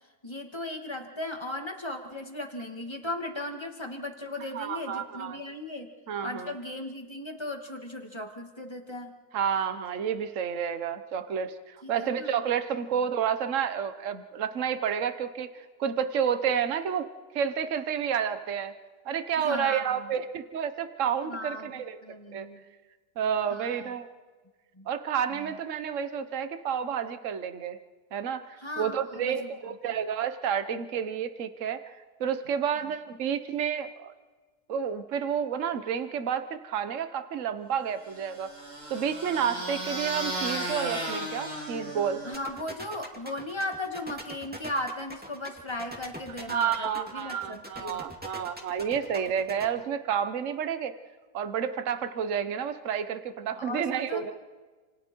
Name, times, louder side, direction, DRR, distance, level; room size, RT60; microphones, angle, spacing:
voice 1, 0.2-5.9 6.2-9.1 11.8-12.4 19.4-20.1 21.2-22.6 23.5-23.9 24.7-24.9 25.3-25.6 28.6-29.5 29.8-29.9 32.8-32.9 42.2-48.0 53.6-54.2, left 1 dB, 15° left, 3 dB, 2.2 m, -37 dB
voice 2, 4.5-5.4 6.1-6.5 9.3-17.1 17.3-18.7 19.0-22.0 22.3-22.5 23.2-24.1 24.9-27.8 28.1-34.1 34.7-38.5 38.9-42.2 46.5-50.9 51.3-54.3, right 8 dB, 55° right, 10 dB, 1.4 m, -30 dB
sound 1, 38.1-42.6, right 1 dB, 75° right, 7.3 m, -35 dB
sound 2, 42.3-49.6, equal, 5° right, 2.3 m, -42 dB
29.0 x 28.0 x 4.6 m, 1.3 s
omnidirectional pair, 1.7 m